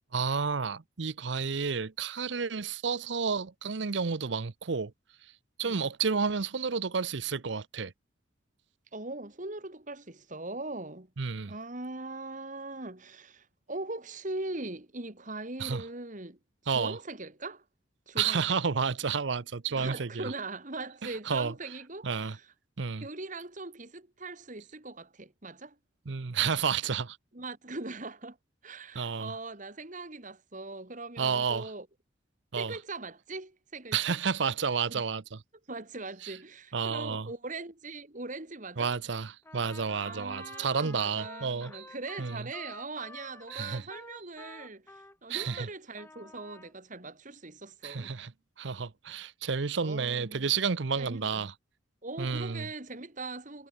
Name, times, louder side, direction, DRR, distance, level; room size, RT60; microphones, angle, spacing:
voice 1, 0.1-4.9 5.6-7.9 11.2-11.5 15.6-15.8 16.7-17.0 18.2-20.3 21.0-21.5 22.0-22.4 22.8-23.1 26.1-27.2 28.9-29.3 31.2-31.7 32.5-32.8 33.9-35.4 36.2-36.4 36.7-37.3 38.8-41.9 42.2-42.5 43.5-43.9 45.3-45.7 47.8-48.3 48.6-51.5 52.2-52.7, right 5 dB, 65° right, 0.7 m, -31 dB
voice 2, 8.9-11.1 11.5-16.4 16.6-17.6 18.1-18.6 19.7-22.5 23.0-25.8 27.3-28.4 28.6-31.9 32.5-34.2 34.9-35.0 35.7-38.9 40.0-48.2 49.8-50.6 51.0-51.5 52.0-53.7, right 2 dB, 40° right, 2.2 m, -41 dB
Trumpet, 39.4-45.7 46.0-46.7, left 2 dB, 10° left, 6.0 m, -49 dB
head